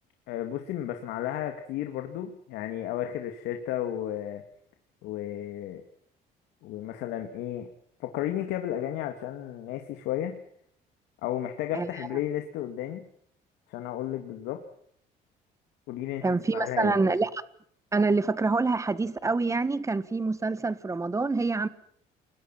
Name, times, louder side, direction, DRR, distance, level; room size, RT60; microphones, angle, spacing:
voice 1, 0.3-4.4 5.0-5.8 6.6-7.7 8.0-10.4 11.2-13.1 13.7-14.6 15.9-16.2 16.5-16.9, left 12 dB, 90° left, 2.3 m, -33 dB
voice 2, 16.2-17.4 17.9-21.7, right 3 dB, 20° right, 1.6 m, -26 dB
28.5 x 22.0 x 5.9 m
cardioid pair, 110°, 17 cm